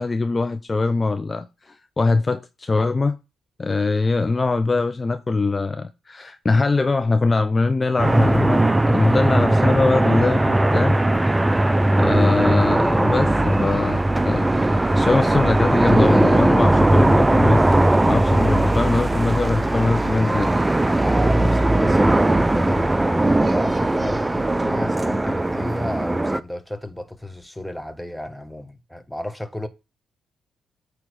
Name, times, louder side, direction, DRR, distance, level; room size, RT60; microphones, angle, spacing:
voice 1, 0.0-3.2 3.6-11.0 11.6-20.5, left 3 dB, 30° left, 0.6 m, -22 dB
sound 1, 8.0-26.4, right 1 dB, 15° right, 0.5 m, -19 dB
voice 2, 20.9-29.7, left 1 dB, 5° left, 1.2 m, -32 dB
8.6 x 3.2 x 6.2 m
supercardioid pair, 55°, 0 cm